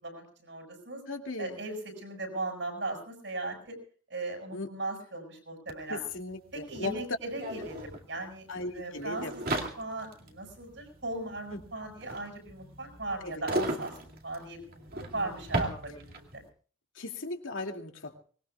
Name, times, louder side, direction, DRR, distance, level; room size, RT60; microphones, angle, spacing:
voice 1, 0.0-1.0 1.4-3.7 4.1-6.0 6.5-8.5 8.7-13.9 14.2-16.4, right 2 dB, 65° right, 4 dB, 6.7 m, -38 dB
voice 2, 1.1-1.6 4.5-4.7 5.9-7.0 8.5-9.3 11.5-11.6 13.2-13.4 15.0-15.3 17.0-18.2, left 2 dB, 90° left, 3 dB, 2.5 m, -37 dB
sound 1, 5.7-5.8 6.0-16.4, right 1 dB, 45° right, 2.3 m, -37 dB
25.0 x 20.0 x 2.4 m, 0.42 s
head